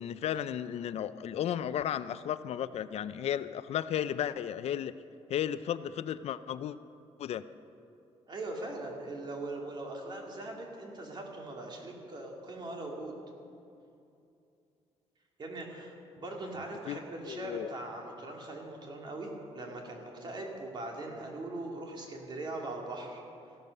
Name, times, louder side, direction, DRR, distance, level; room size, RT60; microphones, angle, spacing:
voice 1, 0.0-4.9 5.3-6.8 7.2-7.4 16.9-17.0 17.3-17.7, left 10 dB, 65° left, 14 dB, 0.4 m, -34 dB
voice 2, 8.3-13.1 15.4-19.3 19.5-23.2, right 2 dB, 40° right, 0 dB, 2.5 m, -40 dB
15.0 x 12.0 x 6.6 m, 2.6 s
cardioid pair, 130°, 12 cm